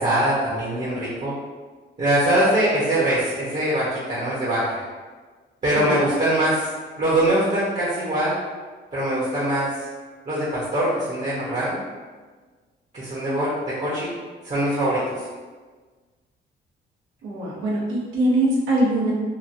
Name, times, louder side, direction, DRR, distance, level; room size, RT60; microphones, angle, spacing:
voice 1, 0.0-1.3 2.0-4.8 5.6-6.7 7.0-8.4 8.9-9.7 10.3-11.8 12.9-14.1 14.4-15.1, right 1 dB, 35° right, -8 dB, 0.8 m, -22 dB
voice 2, 17.2-19.1, right 1 dB, 85° right, -5 dB, 0.9 m, -22 dB
2.9 x 2.4 x 2.5 m, 1.4 s
cardioid pair, 90°, 20 cm